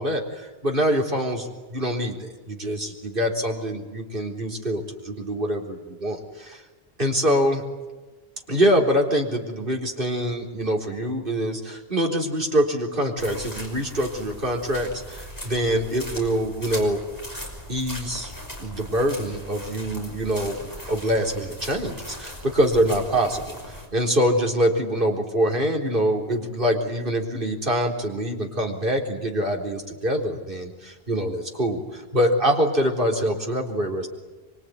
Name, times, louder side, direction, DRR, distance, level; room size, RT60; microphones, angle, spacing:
voice 1, 0.0-6.6 7.0-7.6 8.5-17.0 17.7-18.3 18.6-20.6 20.9-34.1, equal, 55° right, 1 dB, 4.2 m, -24 dB
sound 1, 13.2-23.9, equal, 15° left, 5.7 m, -39 dB
25.0 x 25.0 x 9.5 m, 1.2 s
omnidirectional pair, 1.1 m